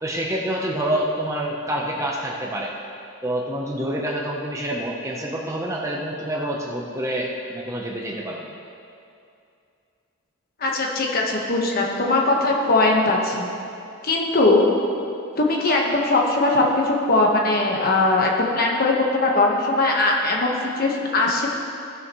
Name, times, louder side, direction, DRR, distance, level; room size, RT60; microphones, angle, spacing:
voice 1, 0.0-2.7 3.2-8.4, right 1 dB, 15° right, -2 dB, 0.8 m, -27 dB
voice 2, 10.6-13.5 14.0-14.7 15.4-21.5, left 2 dB, 45° left, -1 dB, 1.2 m, -20 dB
16.5 x 6.4 x 3.1 m, 2.5 s
head